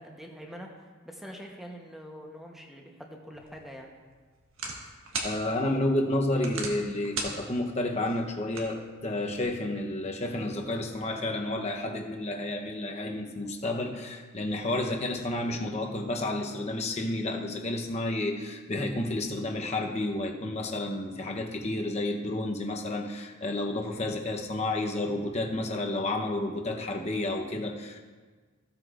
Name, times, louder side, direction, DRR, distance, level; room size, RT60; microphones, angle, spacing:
voice 1, 0.0-3.9, equal, ahead, 1 dB, 0.9 m, -44 dB
sound 1, 3.3-9.4, right 3 dB, 70° right, 1.5 m, -40 dB
voice 2, 5.2-28.0, left 1 dB, 30° left, 2 dB, 0.9 m, -31 dB
15.5 x 7.9 x 2.5 m, 1.4 s
head